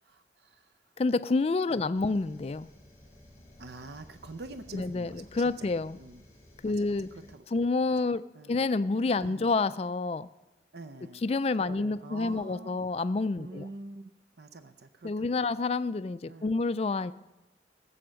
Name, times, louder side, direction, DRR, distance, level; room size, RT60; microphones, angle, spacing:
voice 1, 0.0-0.7 1.7-2.2 3.6-6.2 6.6-7.0 7.3-7.4 8.3-8.6 9.2-9.5 10.7-11.2 11.6-12.8 13.4-15.3 16.3-16.6, right 2 dB, 70° right, 10 dB, 0.6 m, -46 dB
voice 2, 1.0-2.7 4.7-6.0 6.6-7.1 7.5-8.2 8.5-10.3 11.2-13.7 15.0-17.1, left 3 dB, 35° left, 15 dB, 0.3 m, -28 dB
sound 1, 1.9-7.4, left 1 dB, 15° left, 3.2 m, -55 dB
14.0 x 7.8 x 6.3 m, 1.0 s
head